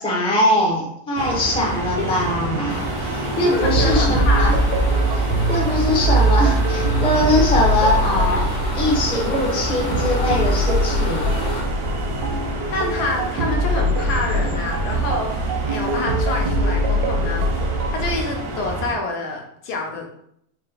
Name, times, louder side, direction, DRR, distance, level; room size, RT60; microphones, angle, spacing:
voice 1, 0.0-4.5 5.1-5.2 5.5-8.5 8.7-11.2, left 1 dB, 10° left, -2 dB, 0.3 m, -22 dB
sound 1, 1.2-19.0, right 2 dB, 55° right, 0.6 m, -29 dB
voice 2, 1.7-2.2 3.4-4.6 7.8-7.9 8.3-8.4 12.7-17.5 17.9-20.3, left 3 dB, 80° left, 1 dB, 1.3 m, -27 dB
sound 2, 2.7-11.6, left 2 dB, 50° left, 0.8 m, -32 dB
sound 3, 3.6-18.2, right 1 dB, 80° right, 1.1 m, -22 dB
4.2 x 2.4 x 3.3 m, 0.70 s
omnidirectional pair, 1.7 m